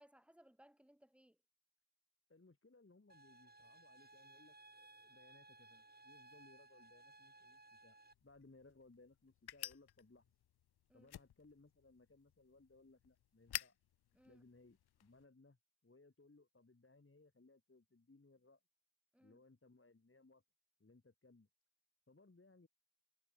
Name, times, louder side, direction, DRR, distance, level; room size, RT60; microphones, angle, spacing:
voice 1, 0.0-1.4 10.9-11.1 14.1-14.4 19.1-19.4, equal, 5° right, 2.1 m, -66 dB
voice 2, 2.3-10.3 10.9-13.8 14.2-15.6 15.8-18.6 19.2-20.4 20.8-21.5 22.1-22.7, left 3 dB, 35° left, 3.3 m, -66 dB
sound 1, 3.1-8.1, right 2 dB, 25° right, 2.8 m, -62 dB
sound 2, 8.1-15.2, left 11 dB, 85° left, 0.6 m, -52 dB
cardioid pair, 45°, 37 cm